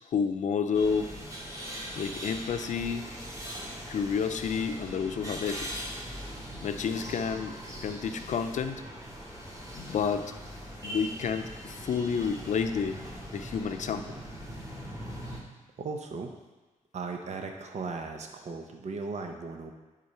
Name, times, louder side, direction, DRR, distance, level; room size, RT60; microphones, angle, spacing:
voice 1, 0.1-1.1 2.0-3.1 3.9-5.9 6.6-8.8 9.7-10.3 10.8-13.0 13.3-14.2, left 6 dB, 60° left, 8 dB, 0.6 m, -30 dB
sound 1, 0.7-15.4, equal, 25° right, 2.2 m, -41 dB
voice 2, 15.8-16.3 16.9-19.7, right 4 dB, 55° right, 4 dB, 0.8 m, -37 dB
10.0 x 4.0 x 4.4 m, 1.2 s
cardioid pair, 75°, 14 cm